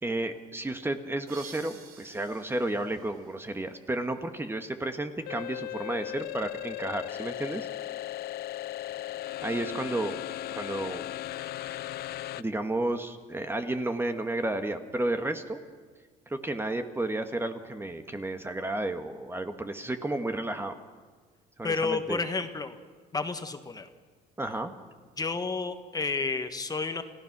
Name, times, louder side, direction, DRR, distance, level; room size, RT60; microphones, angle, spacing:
voice 1, 0.0-7.7 9.4-10.2 10.5-11.0 12.3-15.6 16.3-20.8 21.6-22.2 24.4-24.7, right 2 dB, 15° right, 7 dB, 1.4 m, -32 dB
sound 1, 1.3-4.0, right 6 dB, 65° right, 3.3 m, -51 dB
sound 2, 5.3-12.4, left 13 dB, 70° left, 0.6 m, -37 dB
voice 2, 21.6-22.8 23.1-23.9 25.2-27.0, left 4 dB, 20° left, 8 dB, 1.4 m, -31 dB
30.0 x 15.5 x 6.1 m, 1.5 s
cardioid pair, 110°, 17 cm